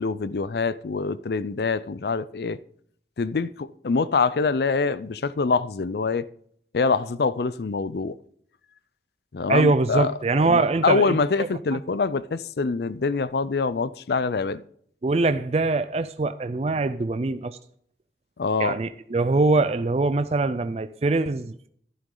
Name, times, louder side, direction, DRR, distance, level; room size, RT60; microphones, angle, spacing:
voice 1, 0.0-2.6 3.2-6.2 6.7-8.2 9.3-14.6 18.4-18.8, left 4 dB, 60° left, 0.5 m, -25 dB
voice 2, 9.5-11.8 15.0-17.6 18.6-21.7, right 3 dB, 35° right, 0.4 m, -23 dB
12.0 x 11.0 x 3.9 m
head